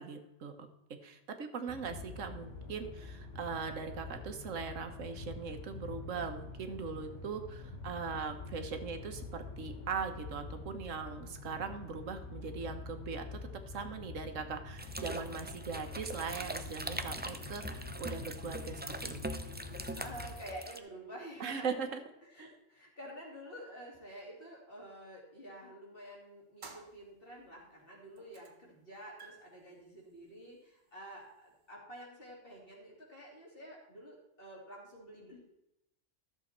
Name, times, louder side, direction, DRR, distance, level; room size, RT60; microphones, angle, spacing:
voice 1, 0.0-13.4 13.7-19.4 21.4-22.0 22.4-22.5, right 5 dB, 90° right, 7 dB, 1.5 m, -40 dB
sound 1, 1.7-20.3, left 3 dB, 75° left, 1.7 m, -46 dB
sound 2, 14.8-20.8, right 1 dB, 15° right, 0.3 m, -42 dB
voice 2, 19.9-21.8 22.2-35.4, right 1 dB, 45° left, -3 dB, 3.3 m, -49 dB
sound 3, 26.6-27.6 28.2-28.7 29.0-31.7, right 4 dB, 40° right, 1.2 m, -55 dB
13.5 x 7.1 x 4.4 m, 0.87 s
omnidirectional pair, 1.3 m